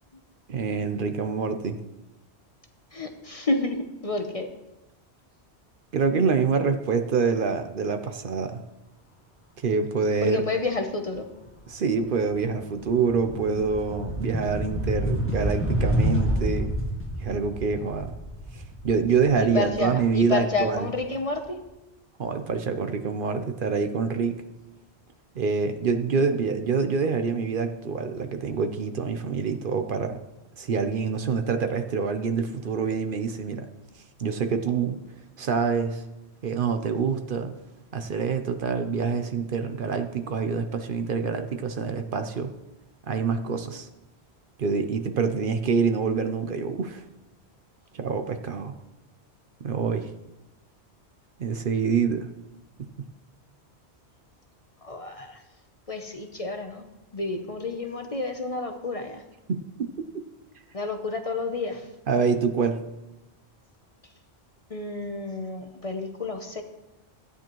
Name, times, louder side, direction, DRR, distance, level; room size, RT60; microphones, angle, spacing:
voice 1, 0.5-1.8 5.9-8.6 9.6-10.4 11.7-16.7 17.2-18.1 18.5-20.9 22.2-24.3 25.4-30.2 30.6-33.7 34.2-35.0 35.4-36.0 36.4-37.5 37.9-42.5 43.1-43.9 44.6-47.0 47.9-48.7 49.6-50.1 51.4-52.3 52.8-52.9 59.5-59.9 62.1-62.8, right 5 dB, 55° right, 8 dB, 0.8 m, -26 dB
voice 2, 2.9-4.5 10.2-11.3 19.4-21.6 54.8-55.4 55.9-56.8 57.1-59.2 60.7-61.9 64.7-66.6, left 3 dB, 40° left, 5 dB, 0.7 m, -30 dB
sound 1, 11.4-11.7 12.0-20.9, equal, 10° left, 1.4 m, -29 dB
13.5 x 9.3 x 3.0 m, 0.96 s
omnidirectional pair, 1.1 m